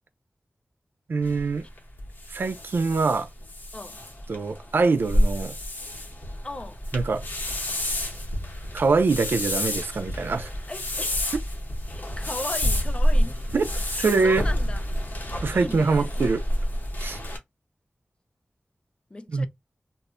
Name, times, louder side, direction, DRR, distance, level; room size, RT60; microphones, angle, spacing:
voice 1, 1.1-1.6 2.3-3.3 4.3-5.5 6.9-7.2 8.7-10.5 13.5-13.7 14.0-14.4 15.4-16.4 17.0-17.2 19.3-19.5, right 4 dB, 90° right, 0.4 m, -23 dB
sound 1, 1.2-17.4, equal, 60° left, 0.8 m, -28 dB
voice 2, 6.4-6.8 10.7-11.3 11.9-13.5 13.9-14.8 15.4-16.1 19.1-19.5, left 2 dB, 30° left, 0.4 m, -37 dB
2.1 x 2.0 x 3.5 m
wide cardioid pair, 70°, 4 cm